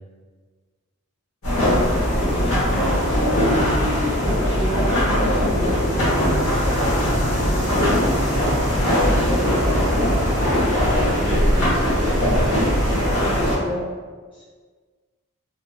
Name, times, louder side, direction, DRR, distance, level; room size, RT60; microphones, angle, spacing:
sound 1, 1.4-13.5, equal, 80° left, 1.0 m, -20 dB
voice 1, 2.0-2.4 3.1-6.4 6.8-8.4 8.8-9.7 9.9-10.7 12.3-12.5 13.3-13.9 14.3-14.4, equal, 20° left, -10 dB, 0.7 m, -32 dB
sound 2, 8.1-13.1, right 1 dB, 70° right, 0.4 m, -33 dB
voice 2, 9.0-9.5 10.8-12.5, left 1 dB, 60° left, -6 dB, 0.8 m, -30 dB
2.8 x 2.4 x 2.3 m, 1.5 s
head